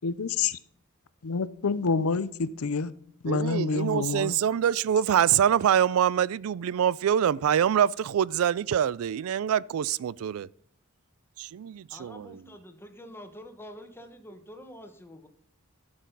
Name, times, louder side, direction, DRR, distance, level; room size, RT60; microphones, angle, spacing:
voice 1, 0.0-0.6 1.2-2.9 3.2-4.4, left 4 dB, 90° left, 0.6 m, -27 dB
voice 2, 3.3-10.5 11.4-12.4, right 9 dB, 75° right, 0.3 m, -25 dB
voice 3, 11.9-15.3, equal, 10° left, 1.2 m, -46 dB
12.0 x 6.4 x 3.9 m
head